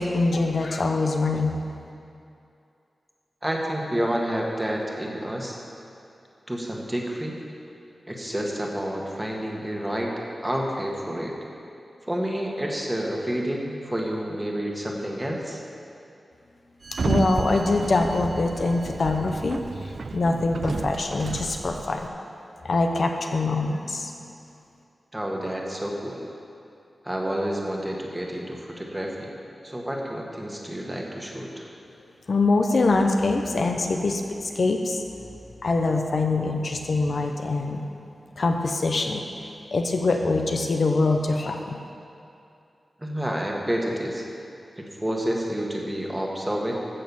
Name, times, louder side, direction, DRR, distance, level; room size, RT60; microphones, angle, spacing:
voice 1, 0.0-1.5 17.0-22.1 22.6-24.1 32.3-35.0 35.6-37.8 38.4-41.8, left 3 dB, 60° left, 3 dB, 0.8 m, -24 dB
voice 2, 3.4-5.6 6.5-7.3 8.1-10.1 10.4-11.4 12.0-15.6 25.1-26.2 27.0-29.3 29.6-31.7 43.0-44.2 44.8-46.7, equal, 10° right, -1 dB, 1.6 m, -29 dB
Sliding door, 16.8-22.1, right 4 dB, 60° right, 0.3 m, -31 dB
14.5 x 6.5 x 7.1 m, 2.6 s
wide cardioid pair, 125°, 0 cm